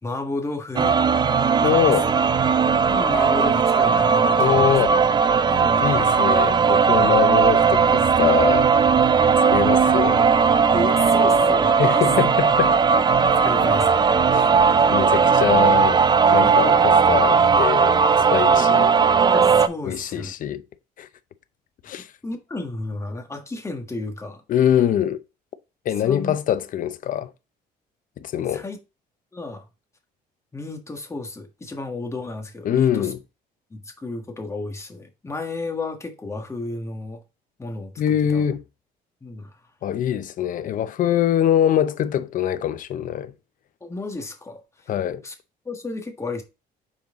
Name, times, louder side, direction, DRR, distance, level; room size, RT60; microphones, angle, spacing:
voice 1, 0.0-1.0 1.6-2.0 2.9-4.7 5.5-5.9 7.0-7.2 10.7-12.0 13.4-14.1 16.4-16.5 19.3-20.3 22.0-24.4 26.0-26.4 28.5-28.8 29.3-29.6 30.5-33.1 33.7-37.2 37.6-38.5 39.2-39.6 43.8-44.6 45.2-45.3 45.6-46.4, left 2 dB, 15° left, 1.4 m, -32 dB
sound 1, 0.8-19.7, right 5 dB, 25° right, 0.4 m, -17 dB
voice 2, 1.6-2.1 4.4-4.9 5.8-8.7 9.5-10.3 11.8-12.7 14.3-14.5 14.9-18.9 19.8-20.6 21.0-21.1 21.8-22.1 24.5-25.2 25.8-27.3 28.2-28.6 32.6-33.2 38.0-38.6 39.8-43.3 44.9-45.2, left 10 dB, 50° left, 0.6 m, -23 dB
5.7 x 4.5 x 3.6 m
cardioid pair, 110°, 17 cm